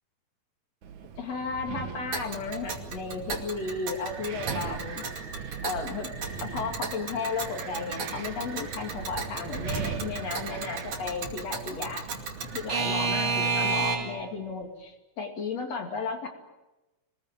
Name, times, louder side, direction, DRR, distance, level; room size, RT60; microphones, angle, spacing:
Wind, 0.8-13.5, right 7 dB, 75° right, 2.9 m, -40 dB
voice 1, 1.2-5.0 5.6-6.1 6.4-12.1 12.5-16.3, left 4 dB, 60° left, 3 dB, 3.7 m, -34 dB
Alarm / Clock, 2.1-14.3, right 4 dB, 60° right, 3.7 m, -33 dB
sound 1, 3.6-14.9, right 2 dB, 35° right, 3.7 m, -49 dB
26.5 x 20.5 x 9.1 m, 1.0 s
omnidirectional pair, 3.4 m